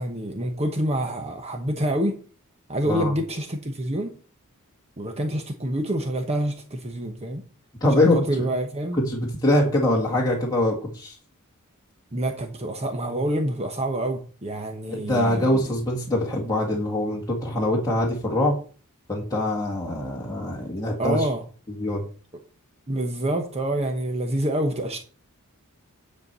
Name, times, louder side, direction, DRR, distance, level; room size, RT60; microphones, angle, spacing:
voice 1, 0.0-2.2 2.7-4.1 5.0-7.4 7.9-9.0 12.1-15.7 21.0-21.4 22.9-25.0, right 1 dB, 30° right, 1.0 m, -27 dB
voice 2, 7.8-8.5 9.0-11.2 14.9-18.5 19.1-21.3 21.8-22.0, left 1 dB, 15° left, 1.8 m, -23 dB
9.9 x 4.6 x 6.7 m
head